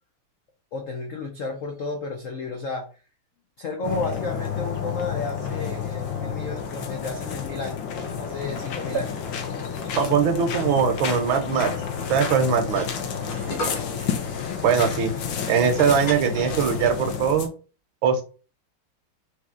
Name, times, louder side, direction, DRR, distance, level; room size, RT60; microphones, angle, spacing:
voice 1, 0.7-2.9 3.6-7.9 8.2-9.2 13.3-14.0, left 3 dB, 85° left, 3 dB, 0.7 m, -33 dB
sound 1, 3.8-17.5, left 7 dB, 65° left, 1.4 m, -30 dB
voice 2, 10.0-11.7 12.1-12.9 14.6-15.1 15.5-17.5 18.0-18.2, right 6 dB, 75° right, 6 dB, 1.4 m, -21 dB
sound 2, 11.9-17.3, equal, 50° left, 1.8 m, -38 dB
4.1 x 3.0 x 3.6 m, 0.35 s
omnidirectional pair, 2.4 m